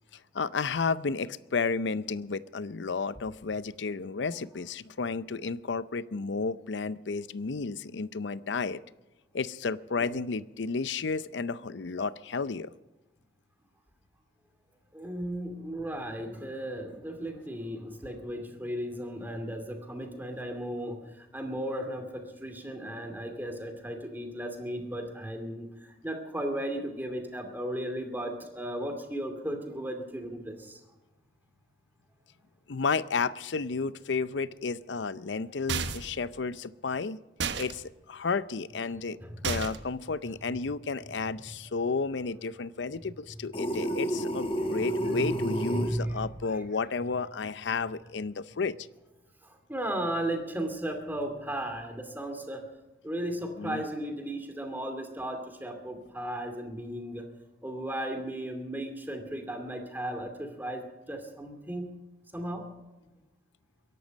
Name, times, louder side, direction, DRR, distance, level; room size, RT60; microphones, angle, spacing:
voice 1, 0.3-8.8 9.3-12.7 32.7-37.2 37.6-39.2 39.4-48.8 53.6-53.8, left 4 dB, 85° left, 17 dB, 0.6 m, -32 dB
voice 2, 14.9-30.8 39.2-39.5 44.7-46.6 49.4-52.7 53.0-57.2 57.6-62.0 62.3-62.7, right 1 dB, 10° right, 5 dB, 2.5 m, -35 dB
sound 1, 35.7-36.2 37.4-37.7 39.4-39.9, right 5 dB, 75° right, 1.1 m, -32 dB
sound 2, 43.5-45.9, right 1 dB, 30° left, 1.5 m, -30 dB
22.5 x 11.5 x 5.2 m, 1.1 s
head